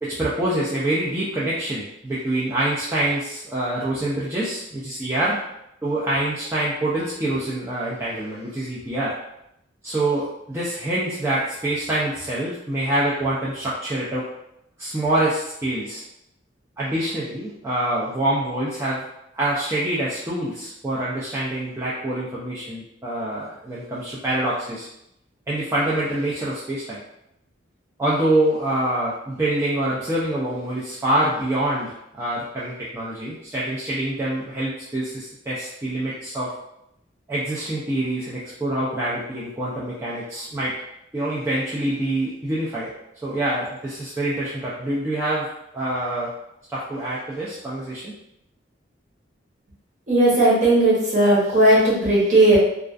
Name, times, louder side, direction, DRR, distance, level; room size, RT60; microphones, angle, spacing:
voice 1, 0.0-5.4 5.8-9.1 9.8-14.3 14.8-16.0 16.8-19.0 19.3-24.9 25.5-27.0 28.0-36.5 37.3-40.7 41.1-42.9 43.2-45.5 45.7-46.3 46.7-48.1, right 1 dB, 15° right, -8 dB, 0.3 m, -25 dB
voice 2, 50.1-52.6, right 1 dB, 40° right, -6 dB, 0.8 m, -16 dB
2.3 x 2.3 x 2.4 m, 0.81 s
head